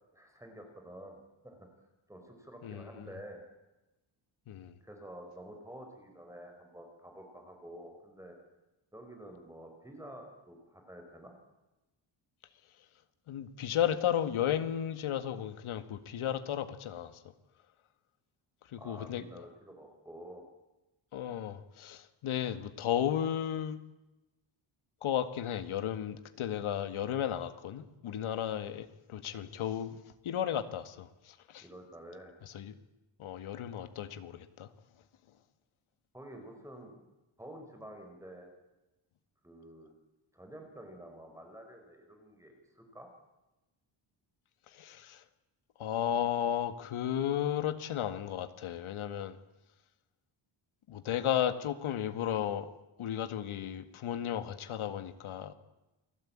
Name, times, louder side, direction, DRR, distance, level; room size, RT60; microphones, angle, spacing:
voice 1, 0.1-1.2 1.4-1.7 2.1-3.4 4.8-8.4 8.9-11.4 18.8-20.4 31.6-32.3 36.1-37.0 37.4-38.5 39.4-39.9 40.3-43.1, right 1 dB, 5° right, 4 dB, 4.8 m, -49 dB
voice 2, 2.6-3.1 4.5-4.7 13.3-17.1 18.7-19.5 21.1-23.8 25.0-31.7 32.4-32.8 33.2-34.7 44.7-45.2 45.8-49.4 50.9-52.7 53.0-55.5, left 10 dB, 75° left, 10 dB, 2.0 m, -34 dB
29.0 x 19.0 x 8.8 m, 1.0 s
wide cardioid pair, 150°, 49 cm